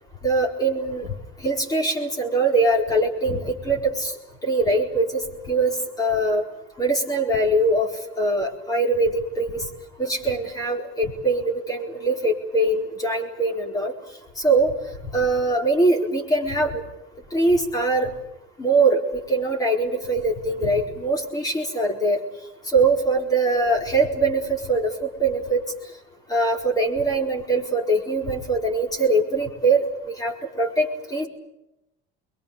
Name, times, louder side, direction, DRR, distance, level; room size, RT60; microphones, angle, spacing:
voice 1, 0.2-1.1 1.4-4.1 4.4-6.4 6.8-7.9 8.2-9.7 10.0-13.9 14.4-14.7 15.1-16.8 17.3-18.1 18.6-19.0 19.3-22.2 22.7-25.6 26.3-29.8 30.1-31.3, right 2 dB, 15° left, 2 dB, 4.4 m, -22 dB
29.0 x 23.0 x 6.9 m, 0.88 s
cardioid pair, 170°, 21 cm